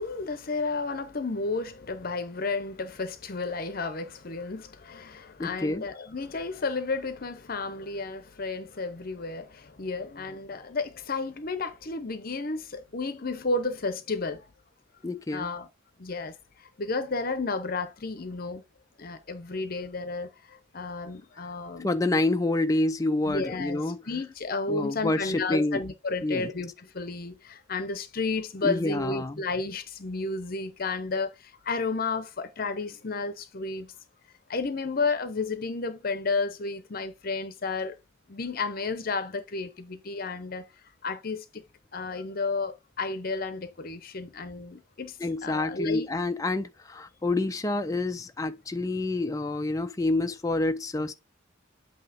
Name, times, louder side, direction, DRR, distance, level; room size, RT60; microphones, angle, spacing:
voice 1, 0.0-14.5 15.3-15.7 16.0-18.6 19.0-21.9 23.3-23.8 24.1-33.9 34.5-38.0 38.3-40.7 41.0-41.6 41.9-46.1, left 3 dB, 45° left, 0.7 m, -32 dB
voice 2, 5.4-5.9 15.0-15.5 21.8-24.0 24.7-25.8 26.2-26.5 28.6-29.4 45.2-51.1, left 2 dB, 15° left, 0.5 m, -28 dB
8.4 x 2.9 x 4.9 m
head